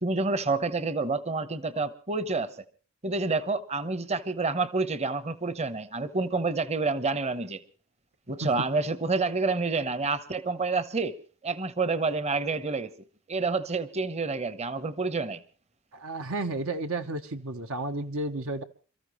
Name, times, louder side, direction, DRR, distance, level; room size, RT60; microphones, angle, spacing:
voice 1, 0.0-2.5 3.0-7.6 8.3-11.2 11.4-12.9 13.3-15.4, right 3 dB, 30° right, 15 dB, 1.0 m, -28 dB
voice 2, 15.9-18.6, right 2 dB, 65° right, 7 dB, 1.1 m, -32 dB
28.5 x 14.0 x 3.2 m, 0.39 s
head